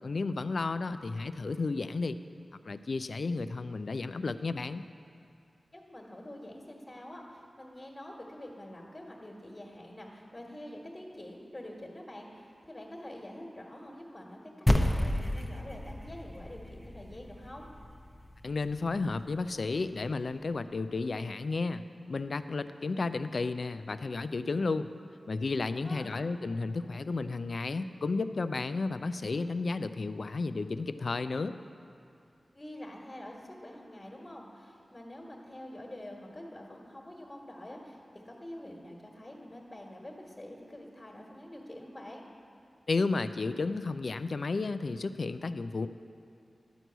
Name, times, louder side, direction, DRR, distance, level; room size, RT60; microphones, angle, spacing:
voice 1, 0.0-2.2 2.7-4.8 18.4-24.9 25.3-31.5 42.9-45.9, left 3 dB, 70° left, 12 dB, 0.3 m, -32 dB
voice 2, 5.7-17.7 25.8-26.2 32.5-38.0 38.2-42.2, left 1 dB, 35° left, -2 dB, 1.5 m, -46 dB
sound 1, 14.7-19.2, left 1 dB, 10° left, 0.8 m, -31 dB
11.5 x 4.6 x 7.9 m, 2.4 s
cardioid pair, 45°, 0 cm